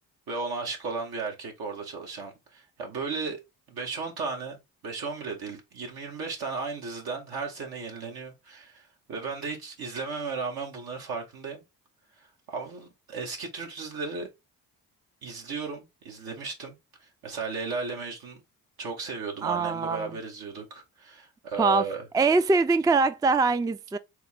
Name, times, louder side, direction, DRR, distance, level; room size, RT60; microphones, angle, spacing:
voice 1, 0.3-3.4 3.7-11.6 12.2-14.3 15.2-18.4 18.8-22.0, right 4 dB, 75° right, 1.8 m, -35 dB
voice 2, 19.4-20.1 21.6-21.9 22.1-24.0, right 4 dB, 10° right, 0.4 m, -23 dB
4.3 x 3.2 x 3.5 m
supercardioid pair, 55°, 37 cm